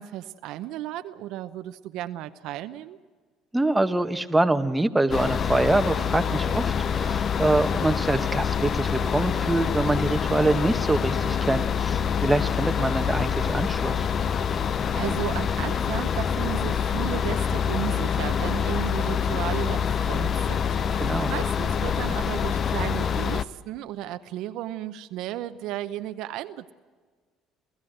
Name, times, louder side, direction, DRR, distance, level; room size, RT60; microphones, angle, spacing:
voice 1, 0.0-3.0 14.5-26.7, right 13 dB, 70° right, 10 dB, 0.7 m, -34 dB
voice 2, 3.5-14.1 21.0-21.3, right 2 dB, 10° right, 7 dB, 1.1 m, -25 dB
sound 1, 5.1-23.4, left 7 dB, 45° left, 0.6 m, -26 dB
28.5 x 15.5 x 7.9 m, 1.5 s
supercardioid pair, 75°, 0 cm